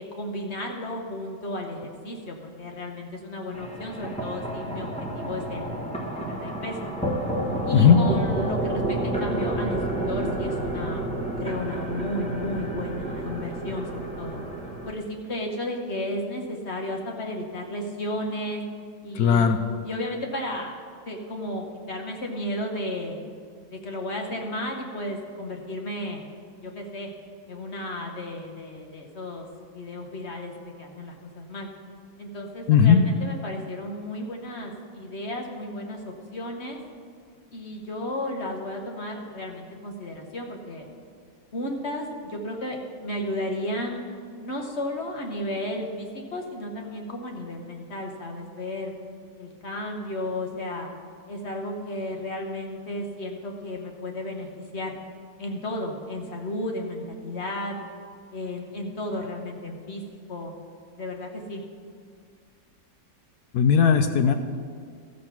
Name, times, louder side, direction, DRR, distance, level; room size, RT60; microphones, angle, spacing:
voice 1, 0.0-6.9 7.7-11.0 11.4-14.4 14.8-18.6 19.0-19.5 19.8-20.7 21.1-23.2 23.7-26.2 26.6-27.1 27.5-29.5 29.7-31.7 32.2-36.8 37.5-40.9 41.5-44.0 44.4-48.9 49.4-50.9 51.3-54.5 54.7-55.0 55.4-57.8 58.3-60.0 60.3-60.5 60.9-61.6, left 1 dB, 45° left, 2 dB, 1.2 m, -33 dB
sound 1, 3.5-14.9, right 1 dB, 5° left, 0.9 m, -30 dB
voice 2, 19.1-19.6 32.7-33.0 63.5-64.3, left 7 dB, 70° left, 8 dB, 1.0 m, -17 dB
13.5 x 6.4 x 5.9 m, 2.1 s
omnidirectional pair, 1.9 m